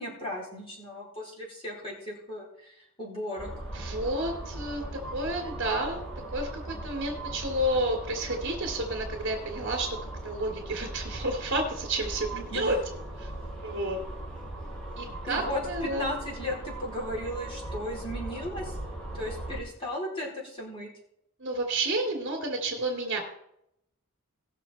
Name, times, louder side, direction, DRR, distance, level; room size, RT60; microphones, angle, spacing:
voice 1, 0.0-3.5 12.3-12.8 15.3-18.8 19.1-20.9, left 1 dB, 25° left, -3 dB, 4.4 m, -36 dB
sound 1, 3.4-19.6, right 1 dB, 5° left, 4.0 m, -39 dB
voice 2, 3.7-4.8 5.1-6.0 6.3-6.5 6.8-10.0 10.2-12.8 13.2-13.3 13.6-14.0 15.0-16.1 21.4-23.2, right 1 dB, 60° right, 1 dB, 2.8 m, -30 dB
19.5 x 6.6 x 4.3 m, 0.77 s
head